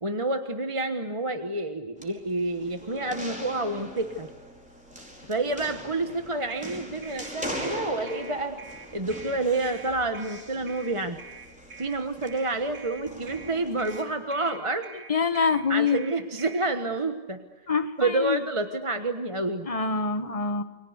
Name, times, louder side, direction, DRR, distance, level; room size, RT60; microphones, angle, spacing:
voice 1, 0.0-4.3 5.3-8.6 8.9-11.2 11.8-14.9 15.7-17.4 18.0-19.7, right 2 dB, 20° right, 7 dB, 1.1 m, -29 dB
sound 1, 2.0-14.0, equal, 5° right, 4.6 m, -41 dB
sound 2, 6.5-16.7, right 5 dB, 55° right, 4.0 m, -46 dB
voice 2, 15.1-16.0 17.7-18.4 19.6-20.6, left 5 dB, 20° left, 10 dB, 1.2 m, -25 dB
29.5 x 23.5 x 8.2 m, 1.2 s
omnidirectional pair, 1.9 m